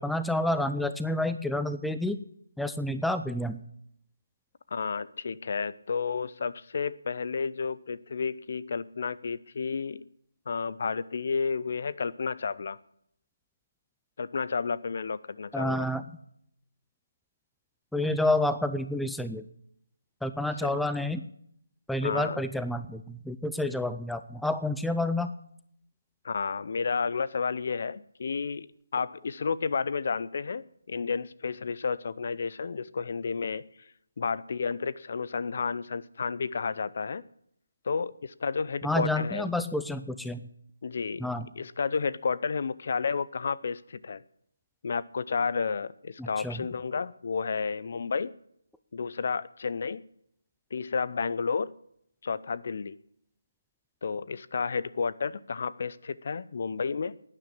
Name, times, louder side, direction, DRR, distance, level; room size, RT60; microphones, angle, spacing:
voice 1, 0.0-2.2 2.6-3.6 15.5-16.0 17.9-19.4 20.2-21.3 21.9-25.3 38.8-40.4 41.2-41.5 46.2-46.6, left 1 dB, ahead, 0.5 m, -29 dB
voice 2, 4.7-10.0 10.5-12.8 14.2-15.9 20.6-20.7 22.0-22.4 26.2-28.7 28.9-33.6 34.2-37.2 37.8-39.5 40.8-41.3 41.6-44.2 44.8-48.3 48.9-50.0 50.7-51.7 52.2-53.0 54.0-57.2, left 5 dB, 50° left, 0.6 m, -31 dB
12.0 x 9.9 x 8.6 m
figure-of-eight pair, 150°, 0 cm